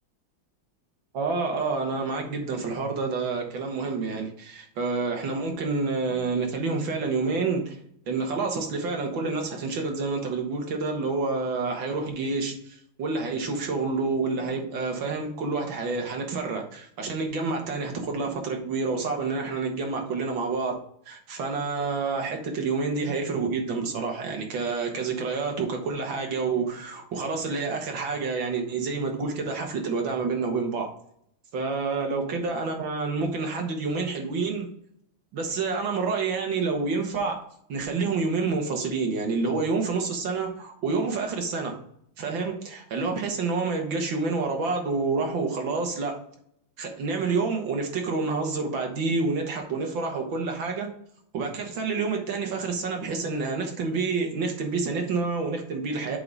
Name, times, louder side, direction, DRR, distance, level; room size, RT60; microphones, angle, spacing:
voice 1, 1.1-7.8 8.1-20.8 21.1-30.9 31.5-34.7 35.3-37.4 37.7-41.7 42.2-46.2 46.8-50.9 51.3-56.2, right 4 dB, 70° right, 2.1 m, -28 dB
7.7 x 3.9 x 5.3 m
omnidirectional pair, 2.2 m